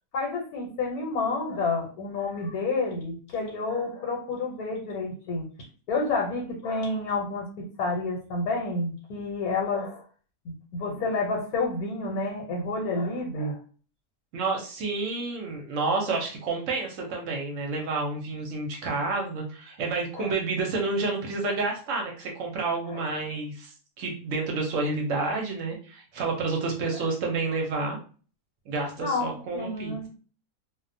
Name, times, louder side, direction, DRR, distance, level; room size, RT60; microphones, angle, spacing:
voice 1, 0.1-5.5 5.9-7.5 7.8-10.0 10.4-13.6 16.1-16.2 20.1-20.3 22.9-23.0 29.0-30.1, left 3 dB, 80° left, -1 dB, 1.2 m, -29 dB
voice 2, 14.3-28.0 28.7-29.9, right 3 dB, 65° right, 1 dB, 0.9 m, -29 dB
2.4 x 2.1 x 2.5 m, 0.40 s
omnidirectional pair, 1.6 m